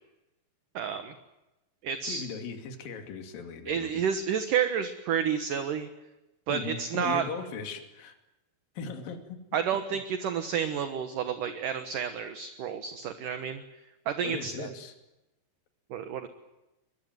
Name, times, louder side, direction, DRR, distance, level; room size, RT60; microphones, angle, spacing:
voice 1, 0.7-1.1 1.8-2.2 3.7-5.9 6.5-7.2 9.5-13.6 14.1-14.7 15.9-16.3, right 8 dB, 65° right, 9 dB, 2.4 m, -30 dB
voice 2, 2.1-4.0 6.5-8.2 8.8-9.4 14.2-14.9, left 5 dB, 55° left, 6 dB, 4.0 m, -38 dB
23.5 x 22.0 x 9.2 m, 0.98 s
omnidirectional pair, 5.2 m